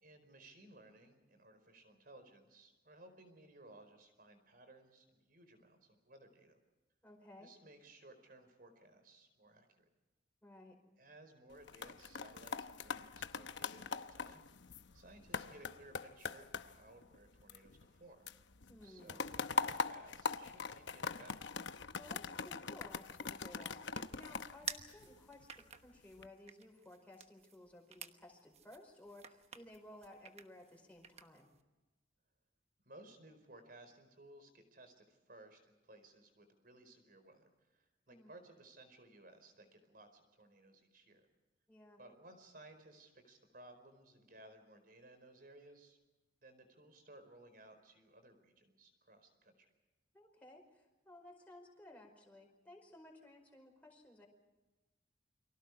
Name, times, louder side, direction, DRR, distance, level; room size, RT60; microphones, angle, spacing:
voice 1, 0.0-6.6 7.4-9.9 11.0-18.3 18.8-21.4 32.8-41.3 42.0-46.0 46.4-49.7, right 2 dB, 50° right, 8 dB, 4.7 m, -60 dB
voice 2, 7.0-7.5 10.4-10.8 18.7-19.3 22.0-31.5 38.1-38.3 41.7-42.0 50.1-54.3, left 1 dB, 10° left, 0 dB, 5.0 m, -57 dB
sound 1, 11.5-18.0 18.3-25.5 26.0-26.3, left 5 dB, 75° left, 0.9 m, -42 dB
sound 2, 22.9-31.6, right 7 dB, 35° right, 1.2 m, -52 dB
29.5 x 24.5 x 4.8 m, 1.1 s
head